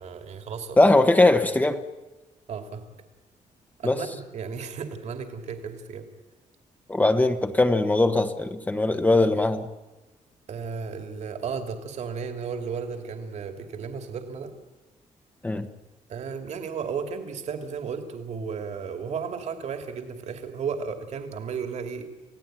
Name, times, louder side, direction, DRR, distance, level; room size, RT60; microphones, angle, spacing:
voice 1, 0.0-0.8 2.5-2.8 3.8-6.0 10.5-14.5 16.1-22.1, right 6 dB, 60° right, 5 dB, 2.8 m, -34 dB
voice 2, 0.8-1.8 3.8-4.0 6.9-9.7 15.4-15.7, left 2 dB, 15° left, 7 dB, 1.2 m, -20 dB
28.5 x 17.0 x 9.2 m, 1.1 s
wide cardioid pair, 155°, 13 cm